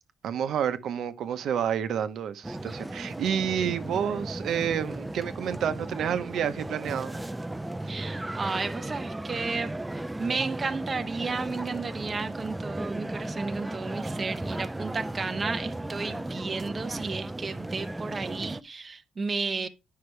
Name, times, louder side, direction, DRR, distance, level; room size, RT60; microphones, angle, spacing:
voice 1, 0.2-7.2, right 8 dB, 65° right, 1.0 m, -29 dB
sound 1, 2.4-18.6, right 1 dB, 10° right, 0.4 m, -35 dB
voice 2, 7.8-9.7 10.2-19.7, right 4 dB, 25° right, 0.8 m, -33 dB
9.7 x 5.8 x 3.3 m
cardioid pair, 125°, 0 cm